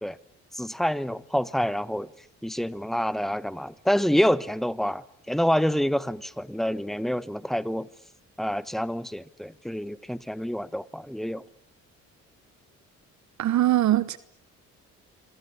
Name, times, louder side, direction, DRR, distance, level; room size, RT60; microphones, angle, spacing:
voice 1, 0.5-2.1 2.4-7.9 8.4-11.4, equal, ahead, 1.1 m, -27 dB
voice 2, 13.4-14.2, right 13 dB, 70° right, 1.0 m, -21 dB
28.0 x 24.0 x 8.6 m
cardioid pair, 90°, 30 cm